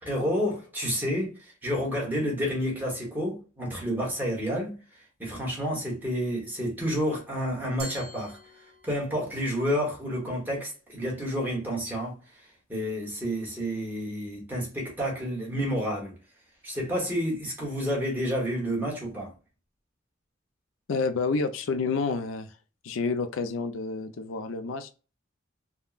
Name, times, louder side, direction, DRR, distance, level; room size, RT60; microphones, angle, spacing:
voice 1, 0.0-4.8 5.2-8.4 8.8-12.1 12.7-16.1 16.6-19.3, equal, 10° right, 1.2 m, -30 dB
Glass, 7.8-9.2, right 1 dB, 60° right, 1.5 m, -43 dB
voice 2, 20.9-22.5 22.8-24.9, left 4 dB, 85° left, 0.4 m, -29 dB
3.5 x 2.2 x 2.4 m
head